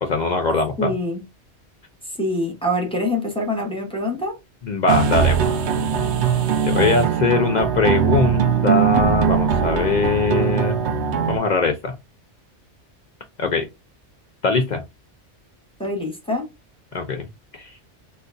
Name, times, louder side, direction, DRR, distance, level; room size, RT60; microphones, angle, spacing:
voice 1, 0.0-0.9 4.6-5.4 6.6-10.8 11.3-11.9 13.4-13.7 14.4-14.8 16.9-17.3 17.5-17.7, left 4 dB, 60° left, 0.4 m, -21 dB
voice 2, 0.8-1.2 2.2-4.4 15.8-16.5, left 1 dB, 5° left, 0.8 m, -25 dB
sound 1, 4.9-11.4, right 7 dB, 70° right, 0.9 m, -20 dB
3.8 x 2.4 x 2.5 m
omnidirectional pair, 1.2 m